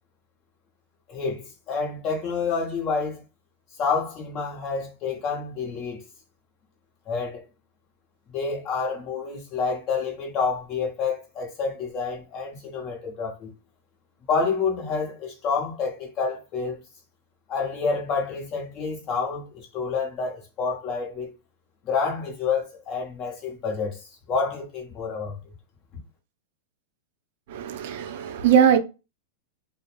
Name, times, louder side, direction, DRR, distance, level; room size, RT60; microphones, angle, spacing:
voice 1, 1.1-3.2 3.8-6.0 7.1-7.4 8.3-13.5 14.3-16.8 17.5-21.3 21.8-24.0 24.3-25.4, left 5 dB, 35° left, 1.0 m, -28 dB
voice 2, 27.5-28.8, right 8 dB, 60° right, 0.5 m, -20 dB
2.6 x 2.0 x 3.0 m
supercardioid pair, 140°, 0 cm